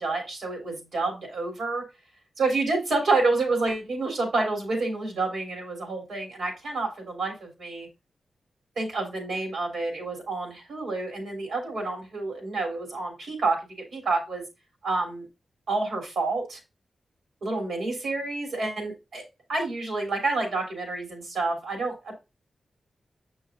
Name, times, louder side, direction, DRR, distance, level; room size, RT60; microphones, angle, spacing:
voice 1, 0.0-1.8 2.4-7.9 8.8-13.6 13.9-14.4 14.8-15.2 15.7-16.6 17.4-19.2 19.5-22.1, right 3 dB, 80° right, 2 dB, 3.2 m, -28 dB
7.5 x 5.7 x 2.6 m, 0.26 s
cardioid pair, 80°, 0 cm